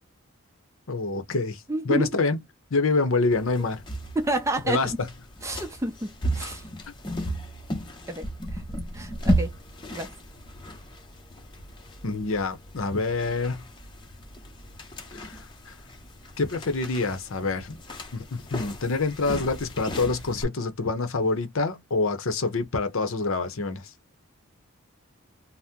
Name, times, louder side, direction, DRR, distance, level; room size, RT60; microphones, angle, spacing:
voice 1, 0.9-2.4 2.7-3.8 4.6-4.9 12.0-13.6 15.1-15.8 16.4-17.8 18.1-23.9, left 3 dB, 75° left, 0.7 m, -26 dB
voice 2, 1.7-2.1 4.2-5.0 5.4-6.6 8.1-8.6 8.9-9.5 9.9-10.1, right 1 dB, 15° right, 0.5 m, -29 dB
sound 1, 3.3-20.4, equal, 20° left, 0.7 m, -34 dB
2.7 x 2.1 x 3.5 m
head